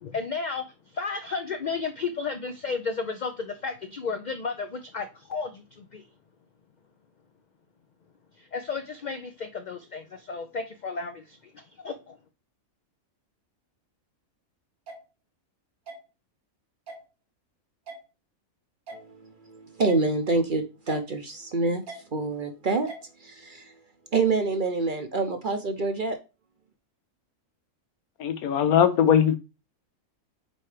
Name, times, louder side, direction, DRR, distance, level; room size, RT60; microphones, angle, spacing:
voice 1, 0.0-0.7 0.9-6.0 8.4-12.2, left 4 dB, 55° left, 7 dB, 0.5 m, -33 dB
sound 1, 14.9-15.0 15.9-16.0 16.9-17.0 17.9-18.0 18.9-19.0 19.9-20.0 20.9-21.0 21.9-22.0 22.9-23.0, right 3 dB, 90° right, 2.2 m, -40 dB
voice 2, 19.5-21.8 22.1-22.9 23.2-23.7 24.1-26.2, right 3 dB, 45° right, 7 dB, 0.8 m, -26 dB
voice 3, 28.2-29.4, left 8 dB, 90° left, 10 dB, 1.3 m, -20 dB
5.3 x 4.4 x 4.9 m, 0.29 s
omnidirectional pair, 1.5 m